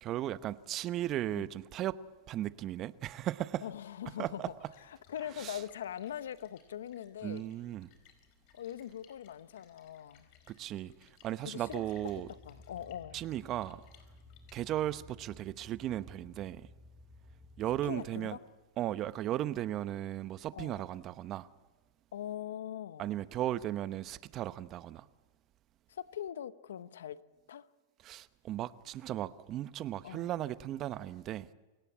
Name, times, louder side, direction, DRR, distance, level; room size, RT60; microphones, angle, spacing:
voice 1, 0.0-2.0 2.3-3.6 4.2-4.7 5.4-5.6 7.2-7.9 10.5-12.3 13.1-13.8 14.5-16.7 17.6-18.4 18.8-21.5 23.0-25.0 28.0-31.5, right 13 dB, 40° right, 0.9 m, -36 dB
voice 2, 3.6-4.5 4.9-7.4 8.5-10.3 11.4-11.9 12.1-13.2 17.8-18.4 20.5-20.9 22.1-23.1 25.9-27.2 27.5-27.7 30.0-30.3, left 10 dB, 85° left, 0.9 m, -42 dB
Splash splatter, 4.5-15.1, left 8 dB, 55° left, 4.7 m, -64 dB
sound 1, 11.6-17.9, left 2 dB, 5° right, 6.2 m, -56 dB
28.5 x 17.0 x 8.6 m
hypercardioid pair, 120°, 0 cm